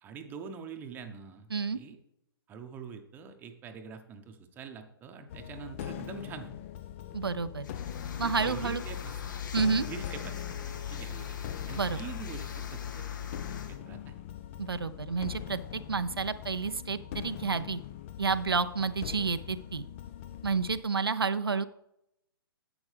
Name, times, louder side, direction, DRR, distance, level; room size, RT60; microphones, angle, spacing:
voice 1, 0.0-2.0 2.5-6.5 8.2-9.2 9.7-11.3 11.7-13.0 13.7-14.1, right 6 dB, 15° right, 6 dB, 0.9 m, -44 dB
sound 1, 5.3-20.8, left 10 dB, 30° left, 0.5 m, -42 dB
voice 2, 7.1-7.7 8.2-8.8 9.5-9.9 11.7-12.0 14.6-17.8 18.2-19.9 20.4-21.7, right 5 dB, 75° right, 11 dB, 0.5 m, -30 dB
sound 2, 7.6-13.8, left 9 dB, 55° left, 1.1 m, -39 dB
10.5 x 7.9 x 3.3 m, 0.82 s
figure-of-eight pair, 120°, 13 cm